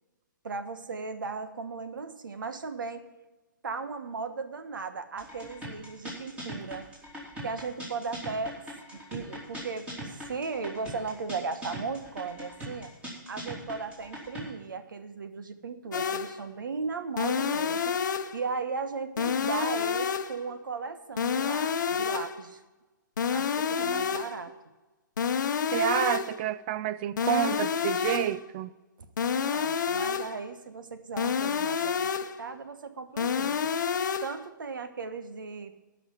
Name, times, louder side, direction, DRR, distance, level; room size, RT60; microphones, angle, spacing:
voice 1, 0.4-3.1 3.6-6.9 7.4-8.6 8.9-12.9 13.3-18.0 18.3-22.6 23.3-24.5 29.0-29.1 29.3-33.7 34.2-35.9, right 4 dB, 75° right, 1.3 m, -36 dB
sound 1, 5.2-14.5, right 1 dB, 10° right, 3.1 m, -41 dB
sound 2, 15.9-16.4 17.2-18.4 19.2-20.4 21.2-22.4 23.2-24.4 25.2-26.4 27.2-28.4 29.2-30.4 31.2-32.4 33.2-34.4, left 7 dB, 65° left, 0.8 m, -29 dB
voice 2, 25.7-28.7, right 11 dB, 30° right, 0.4 m, -29 dB
12.0 x 5.9 x 9.0 m
hypercardioid pair, 145°, 11 cm